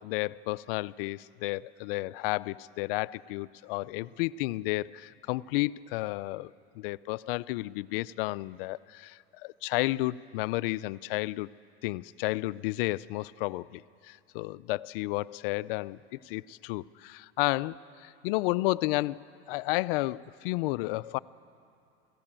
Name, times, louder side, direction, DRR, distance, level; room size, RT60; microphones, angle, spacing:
voice 1, 0.0-11.5 11.8-16.0 16.2-21.2, left 20 dB, 55° left, 18 dB, 0.5 m, -32 dB
24.0 x 15.5 x 8.9 m, 2.6 s
supercardioid pair, 135°, 33 cm